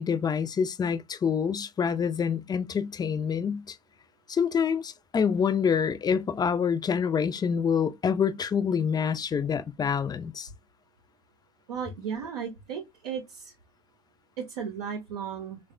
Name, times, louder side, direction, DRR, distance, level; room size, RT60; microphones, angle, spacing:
voice 1, 0.0-3.8 4.3-10.5, left 6 dB, 20° left, 0.4 m, -26 dB
voice 2, 11.7-13.5 14.4-15.6, right 7 dB, 75° right, 0.6 m, -35 dB
3.4 x 2.1 x 2.4 m
figure-of-eight pair, 60°, 20 cm